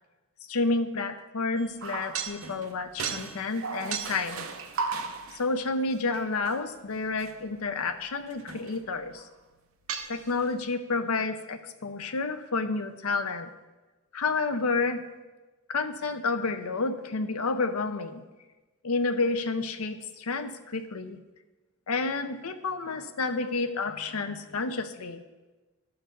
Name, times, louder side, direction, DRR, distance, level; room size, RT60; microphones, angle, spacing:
voice 1, 0.5-4.5 5.3-9.2 10.1-13.5 14.1-15.0 15.7-18.2 18.8-21.2 21.9-25.2, left 3 dB, 75° left, 9 dB, 0.6 m, -30 dB
sound 1, 1.6-5.5 6.1-6.6 7.2-7.3 8.3-8.9 9.2-9.3 9.9-10.4, right 5 dB, 65° right, 0.7 m, -35 dB
11.0 x 3.9 x 6.6 m, 1.2 s
head